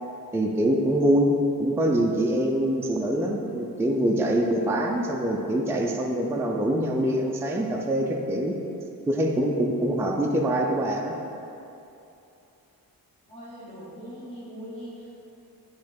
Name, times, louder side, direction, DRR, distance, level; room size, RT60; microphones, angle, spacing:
voice 1, 0.3-1.3 1.6-8.6 9.1-11.2, right 1 dB, 5° right, 0 dB, 0.4 m, -24 dB
voice 2, 13.3-15.2, equal, 15° left, -11 dB, 1.2 m, -41 dB
7.8 x 3.2 x 5.1 m, 2.8 s
wide cardioid pair, 130°, 36 cm